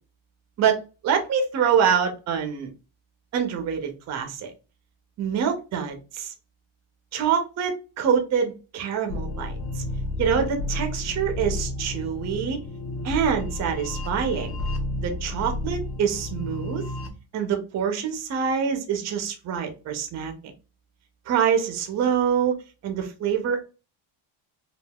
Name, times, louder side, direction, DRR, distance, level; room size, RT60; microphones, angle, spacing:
voice 1, 0.6-2.7 3.3-4.5 5.2-6.3 7.1-9.8 10.2-12.6 13.0-14.6 15.0-16.8 17.3-20.3 21.3-22.6 22.8-23.6, right 7 dB, 35° right, 4 dB, 0.4 m, -25 dB
sound 1, 9.1-17.1, left 2 dB, 80° left, 1.3 m, -31 dB
3.5 x 2.3 x 2.2 m, 0.31 s
cardioid pair, 180°, 50 cm